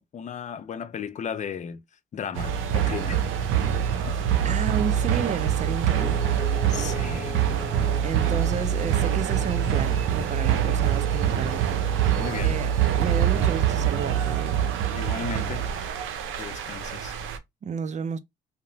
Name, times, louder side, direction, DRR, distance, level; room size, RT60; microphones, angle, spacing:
voice 1, 0.0-1.8 2.1-3.2 3.9-4.3 6.7-7.5 12.0-12.5 14.9-15.6 16.4-17.2, left 7 dB, 40° left, 0.4 m, -35 dB
sound 1, 2.3-17.4, right 9 dB, 85° right, 0.5 m, -25 dB
voice 2, 4.4-6.2 8.0-12.7 13.0-14.6 17.6-18.2, right 6 dB, 35° right, 0.4 m, -32 dB
sound 2, 6.0-10.7, left 3 dB, 10° left, 1.2 m, -41 dB
2.8 x 2.1 x 2.6 m
cardioid pair, 90°, 20 cm